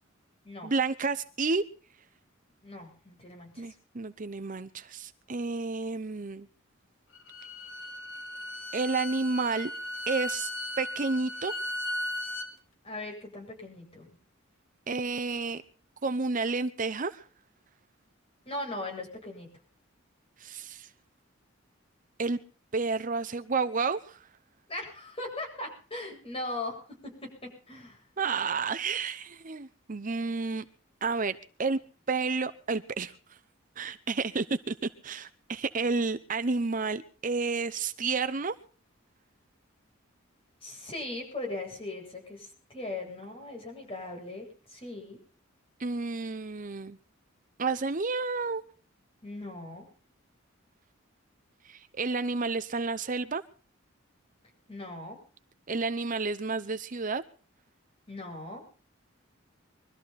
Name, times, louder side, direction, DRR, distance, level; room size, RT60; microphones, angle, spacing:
voice 1, 0.6-1.6 3.6-6.5 8.7-9.7 10.1-10.5 10.8-11.5 14.9-15.6 16.0-17.2 20.4-20.9 22.2-22.4 22.7-24.2 28.2-30.6 31.0-31.8 32.1-33.1 33.8-38.5 45.8-47.0 47.6-48.6 51.6-53.4 55.7-57.2, right 4 dB, 40° right, 0.7 m, -30 dB
voice 2, 2.6-3.7 12.8-14.1 18.4-19.5 24.7-28.0 40.6-45.2 49.2-49.9 54.7-55.2 58.1-58.6, left 2 dB, 30° left, 8.0 m, -39 dB
Bowed string instrument, 7.1-12.5, left 1 dB, 70° left, 3.0 m, -36 dB
23.5 x 13.5 x 4.2 m
head